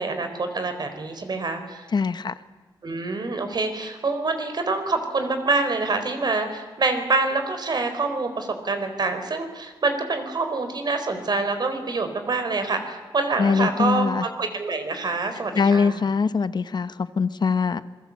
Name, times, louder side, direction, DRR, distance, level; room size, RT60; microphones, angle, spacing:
voice 1, 0.0-1.9 2.8-16.0, right 3 dB, 55° right, 7 dB, 4.1 m, -26 dB
voice 2, 1.9-2.3 13.4-14.3 15.5-17.8, left 5 dB, 55° left, 13 dB, 1.0 m, -22 dB
27.0 x 22.0 x 8.5 m, 1.3 s
wide cardioid pair, 125°, 9 cm